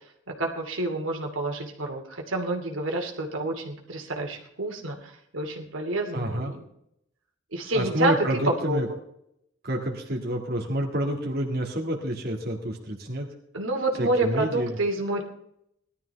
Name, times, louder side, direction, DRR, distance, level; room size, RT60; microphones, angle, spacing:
voice 1, 0.3-6.6 7.5-9.0 13.5-15.2, right 2 dB, 90° right, 2 dB, 2.6 m, -28 dB
voice 2, 6.1-6.5 7.7-8.9 9.6-13.3 14.0-14.8, equal, 50° right, 0 dB, 2.1 m, -28 dB
18.0 x 12.5 x 3.5 m, 0.76 s
head